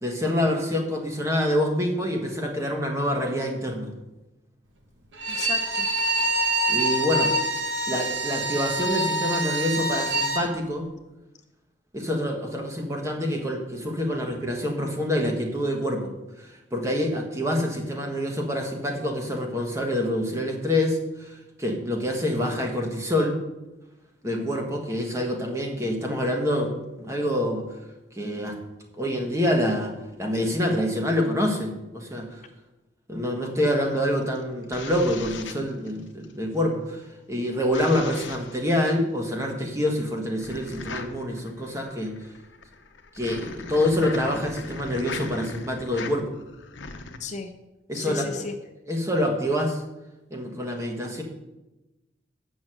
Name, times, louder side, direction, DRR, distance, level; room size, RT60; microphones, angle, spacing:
voice 1, 0.0-3.9 6.7-7.3 7.9-10.9 11.9-16.1 16.4-23.4 24.2-27.7 28.1-28.6 28.9-32.4 33.1-42.2 43.1-46.3 47.9-48.5 48.9-49.8 50.3-51.2, left 1 dB, 15° right, 2 dB, 1.3 m, -26 dB
Bowed string instrument, 5.1-10.5, right 1 dB, 85° right, 1.4 m, -26 dB
voice 2, 5.3-5.9 24.2-24.5 47.2-47.5 47.9-48.5, left 4 dB, 40° left, 6 dB, 0.6 m, -34 dB
sound 1, 34.2-36.3 37.7-38.6 40.4-47.2, left 4 dB, 75° left, 0.9 m, -39 dB
7.7 x 6.3 x 7.6 m, 1.0 s
head